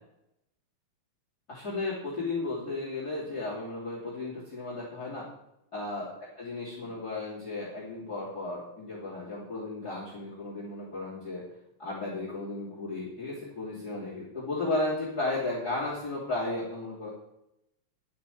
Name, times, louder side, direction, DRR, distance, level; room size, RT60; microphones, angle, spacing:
voice 1, 1.5-5.3 5.7-6.1 6.4-11.4 11.8-17.1, left 2 dB, 30° left, -5 dB, 3.2 m, -34 dB
11.5 x 6.6 x 8.3 m, 0.82 s
omnidirectional pair, 4.0 m